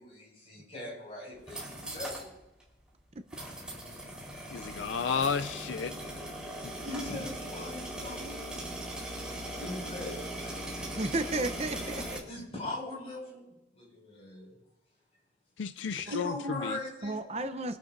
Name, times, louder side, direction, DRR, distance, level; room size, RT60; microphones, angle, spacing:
voice 1, 0.0-2.4 3.6-4.1 6.8-8.9 9.3-10.4 12.3-14.6 15.8-17.3, left 2 dB, 35° left, -2 dB, 5.9 m, -41 dB
sound 1, 1.3-2.3 2.6-2.7 3.3-12.2, right 1 dB, 5° right, 4.1 m, -39 dB
voice 2, 4.5-5.9 6.6-6.7 15.6-16.8, left 6 dB, 90° left, 11 dB, 0.5 m, -32 dB
voice 3, 10.9-12.2 17.0-17.8, right 2 dB, 35° right, 8 dB, 0.7 m, -33 dB
25.0 x 12.0 x 2.7 m, 0.95 s
head